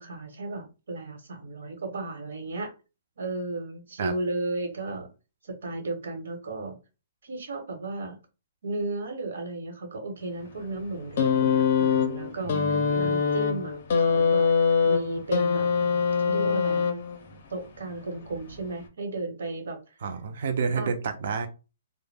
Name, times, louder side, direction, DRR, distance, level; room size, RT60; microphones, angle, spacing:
voice 1, 0.0-2.7 3.2-5.1 5.4-6.8 7.2-8.2 8.6-14.5 14.8-15.7 16.2-16.9 17.5-19.8 20.7-20.9, right 2 dB, 80° right, 3 dB, 1.0 m, -34 dB
sound 1, 11.2-17.3 18.4-18.5, left 6 dB, 45° left, 0.5 m, -23 dB
voice 2, 12.4-13.1 20.0-21.5, right 5 dB, 50° right, 6 dB, 0.4 m, -30 dB
2.2 x 2.0 x 3.3 m, 0.30 s
hypercardioid pair, 175°, 0 cm